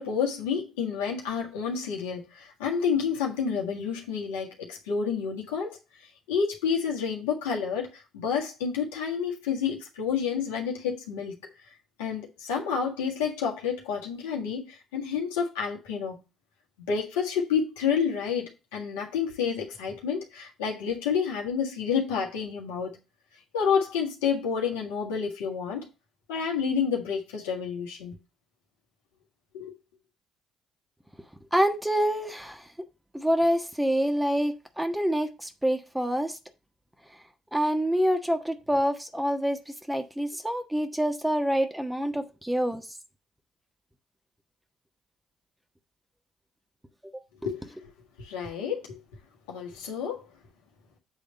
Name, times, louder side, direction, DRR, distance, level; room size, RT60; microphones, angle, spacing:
voice 1, 0.0-5.8 6.3-11.4 12.0-16.2 16.9-23.0 23.5-25.9 26.3-28.2 29.5-29.7 47.4-47.9 48.2-49.0 49.5-50.3, left 6 dB, 85° left, 1.7 m, -29 dB
voice 2, 31.5-32.6 33.1-36.4 37.5-39.6 39.9-42.8, equal, 5° right, 1.3 m, -26 dB
8.1 x 3.5 x 6.5 m
hypercardioid pair, 55°, 0 cm